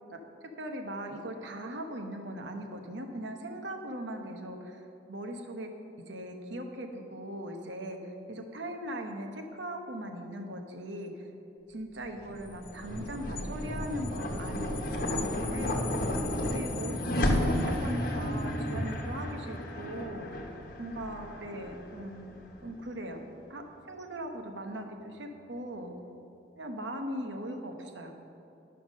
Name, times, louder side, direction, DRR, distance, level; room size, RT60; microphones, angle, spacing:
voice 1, 0.6-5.7 6.1-11.3 11.7-15.8 16.5-20.3 20.8-22.4 22.6-23.2 23.5-25.9 26.6-28.1, right 1 dB, 80° right, 4 dB, 1.0 m, -39 dB
sound 1, 12.2-22.7, left 1 dB, 50° left, 1.1 m, -32 dB
11.0 x 5.8 x 6.4 m, 2.9 s
head